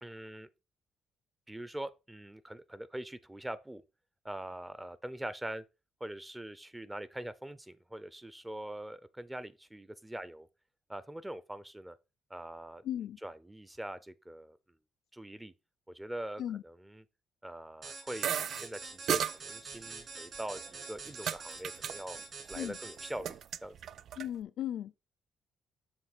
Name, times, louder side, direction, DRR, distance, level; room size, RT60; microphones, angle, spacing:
voice 1, 0.0-0.5 1.5-3.8 4.2-5.6 6.0-10.5 10.9-12.0 12.3-12.8 13.2-14.6 15.1-15.5 15.9-17.0 17.4-22.2 22.5-23.4 23.6-23.8, right 1 dB, 10° right, 0.7 m, -43 dB
voice 2, 12.8-13.2 16.4-16.6 22.5-22.8 24.2-25.0, left 11 dB, 75° left, 0.4 m, -36 dB
sound 1, 17.8-23.4, right 4 dB, 45° right, 2.8 m, -46 dB
sound 2, 18.2-18.6 19.1-19.3 20.3-21.4 21.6-21.9 22.2-22.7 23.0-24.3, right 9 dB, 65° right, 0.4 m, -34 dB
7.2 x 3.2 x 6.1 m
cardioid pair, 90°, 0 cm